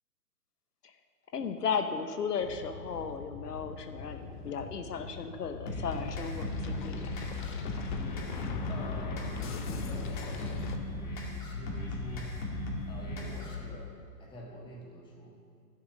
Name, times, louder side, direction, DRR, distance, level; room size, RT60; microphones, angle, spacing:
voice 1, 1.3-7.1, left 6 dB, 70° left, 8 dB, 0.9 m, -35 dB
sound 1, 2.4-10.8, left 5 dB, 30° left, 0.6 m, -42 dB
sound 2, 5.7-13.7, left 2 dB, 50° left, 2.5 m, -37 dB
voice 2, 8.7-12.4 12.9-13.9 14.2-15.4, equal, 10° left, -1 dB, 1.3 m, -46 dB
11.0 x 7.1 x 6.2 m, 2.2 s
figure-of-eight pair, 125°, 50 cm